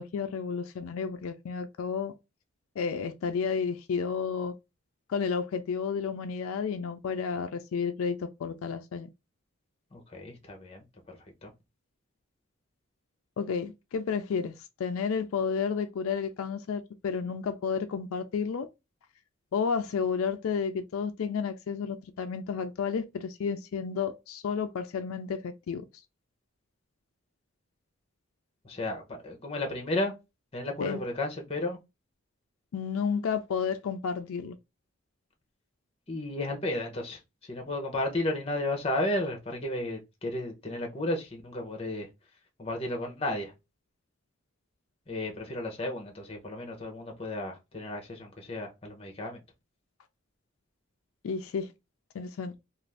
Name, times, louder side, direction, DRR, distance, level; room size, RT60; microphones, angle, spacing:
voice 1, 0.0-2.1 2.8-4.5 5.1-9.1 13.4-14.5 14.8-18.7 19.5-25.8 30.8-31.0 32.7-34.6 51.2-51.7 52.1-52.6, left 6 dB, 75° left, 0.4 m, -31 dB
voice 2, 9.9-10.8 11.4-11.5 28.6-30.1 30.5-31.8 36.1-37.2 37.5-42.1 42.6-43.5 45.1-49.4, left 1 dB, 25° left, 0.7 m, -33 dB
2.5 x 2.4 x 3.3 m
head